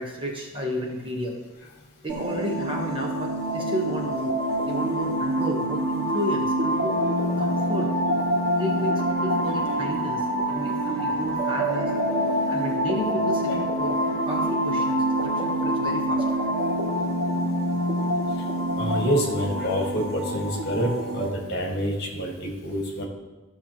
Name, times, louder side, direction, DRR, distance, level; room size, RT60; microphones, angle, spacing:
voice 1, 0.0-1.4 2.0-4.4 4.6-7.0 7.4-7.9 8.6-11.9 12.5-16.4, equal, 25° right, -1 dB, 1.1 m, -32 dB
sound 1, 2.1-21.3, right 1 dB, 55° right, 2.0 m, -26 dB
voice 2, 18.7-23.1, equal, 45° left, 1 dB, 1.7 m, -27 dB
14.5 x 6.2 x 2.9 m, 1.2 s
head